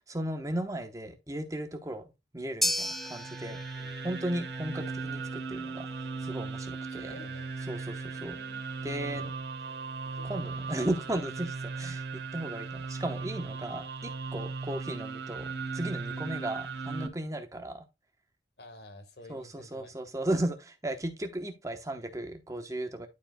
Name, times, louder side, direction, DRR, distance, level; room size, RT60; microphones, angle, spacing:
voice 1, 0.1-2.0 2.3-3.6 4.0-7.1 7.7-8.4 8.8-9.3 10.3-12.0 12.3-17.8 19.3-23.1, right 1 dB, 20° right, 1.0 m, -35 dB
sound 1, 2.6-11.0, left 1 dB, ahead, 0.6 m, -39 dB
sound 2, 2.8-17.1, right 4 dB, 65° right, 1.3 m, -38 dB
voice 2, 6.9-7.5 8.1-8.6 9.0-9.3 10.1-10.5 16.1-16.4 18.6-20.1, left 1 dB, 60° left, 1.5 m, -50 dB
11.5 x 5.0 x 2.2 m
head